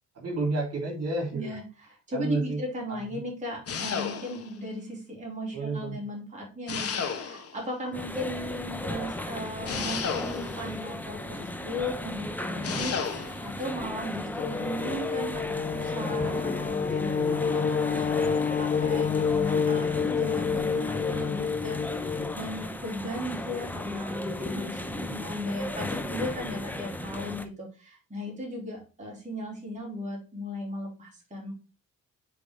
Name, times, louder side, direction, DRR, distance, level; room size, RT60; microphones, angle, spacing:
voice 1, 0.2-1.6 2.1-2.6 2.9-3.2 5.5-6.0 17.2-17.7, right 2 dB, 55° right, 0 dB, 3.4 m, -31 dB
voice 2, 1.3-1.6 2.1-17.1 17.5-31.5, left 1 dB, 25° right, -2 dB, 3.4 m, -36 dB
sound 1, 3.7-4.6 6.7-7.6 9.6-10.7 12.6-13.4, left 6 dB, 50° left, 1.5 m, -32 dB
sound 2, 7.9-27.5, left 1 dB, 5° left, 0.9 m, -35 dB
sound 3, 14.4-22.3, left 6 dB, 25° left, 0.3 m, -28 dB
6.2 x 4.8 x 3.7 m, 0.32 s
cardioid pair, 90°, 30 cm